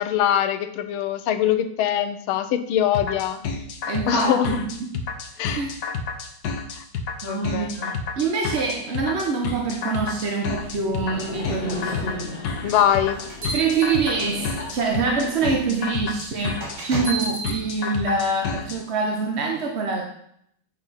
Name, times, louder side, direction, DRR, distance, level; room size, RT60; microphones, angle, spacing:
voice 1, 0.0-3.4 4.1-4.5 5.4-5.6 6.8-6.9 7.2-7.7 12.6-13.2, left 10 dB, 85° left, 10 dB, 1.5 m, -22 dB
sound 1, 2.9-18.8, left 5 dB, 55° left, 1.3 m, -30 dB
voice 2, 3.9-4.9 5.5-5.7 7.2-12.4 13.5-20.0, right 4 dB, 45° right, 1 dB, 0.8 m, -25 dB
Laughter, 10.6-16.4, left 2 dB, 30° left, 1.4 m, -36 dB
sound 2, 12.9-14.6 15.4-15.5 16.6-17.6, right 3 dB, 70° right, 3.6 m, -32 dB
8.4 x 5.1 x 5.6 m, 0.70 s
omnidirectional pair, 2.3 m